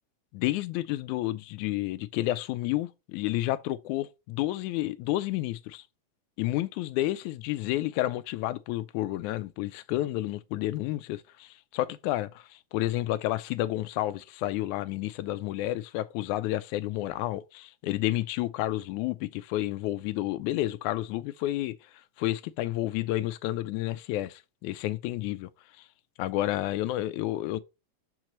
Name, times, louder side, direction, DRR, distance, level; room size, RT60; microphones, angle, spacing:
voice 1, 0.3-5.8 6.4-21.8 22.2-25.5 26.2-27.6, left 15 dB, 90° left, 2.0 m, -30 dB
6.5 x 5.9 x 3.0 m
omnidirectional pair, 3.4 m